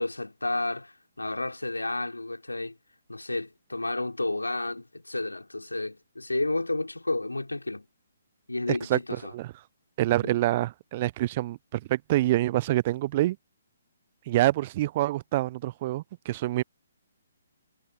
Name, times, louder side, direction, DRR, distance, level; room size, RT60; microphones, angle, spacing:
voice 1, 0.0-2.7 3.1-7.9 8.5-9.3 10.2-10.3, left 2 dB, 80° left, 3.7 m, -31 dB
voice 2, 8.7-9.0 9.3-9.5 10.0-13.4 14.3-16.6, right 15 dB, 35° right, 0.4 m, -26 dB
figure-of-eight pair, 135°, 0 cm